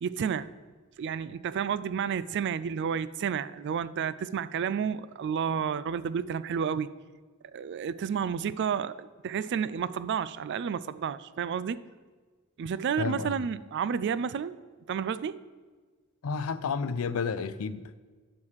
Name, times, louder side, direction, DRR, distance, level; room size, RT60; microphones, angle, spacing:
voice 1, 0.0-0.5 1.0-6.9 7.5-11.8 12.6-14.5 14.9-15.4, right 7 dB, 55° right, 0.3 m, -31 dB
voice 2, 13.0-13.3 16.2-18.0, left 5 dB, 75° left, 0.5 m, -31 dB
9.6 x 4.8 x 7.2 m
head